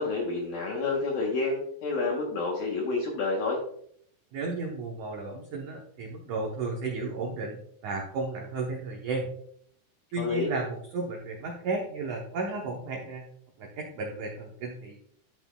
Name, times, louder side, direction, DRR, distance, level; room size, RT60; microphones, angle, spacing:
voice 1, 0.0-3.6 10.2-10.5, left 3 dB, 70° left, -3 dB, 2.6 m, -29 dB
voice 2, 4.3-9.3 10.1-13.3 13.6-15.0, right 3 dB, 75° right, -1 dB, 1.8 m, -33 dB
12.5 x 5.7 x 2.3 m, 0.66 s
omnidirectional pair, 5.0 m